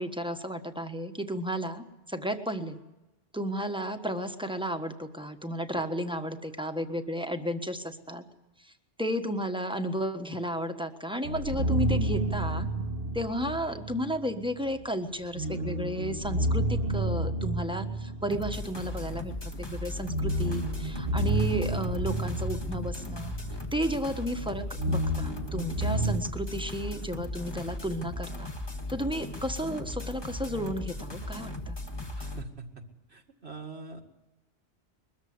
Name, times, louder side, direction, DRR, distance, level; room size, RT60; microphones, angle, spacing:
voice 1, 0.0-2.8 3.3-8.2 8.6-8.7 9.0-12.7 13.1-23.3 23.7-28.5 28.9-31.8, equal, 5° right, 7 dB, 1.4 m, -33 dB
sound 1, 11.2-14.2 15.3-19.2 19.9-23.9 24.2-26.2, right 1 dB, 60° right, 1.3 m, -30 dB
sound 2, 18.3-32.4, left 1 dB, 25° left, 1.5 m, -38 dB
voice 2, 32.2-32.5 33.1-34.0, right 4 dB, 75° right, 3 dB, 2.3 m, -43 dB
22.0 x 14.0 x 9.6 m, 1.0 s
omnidirectional pair, 1.1 m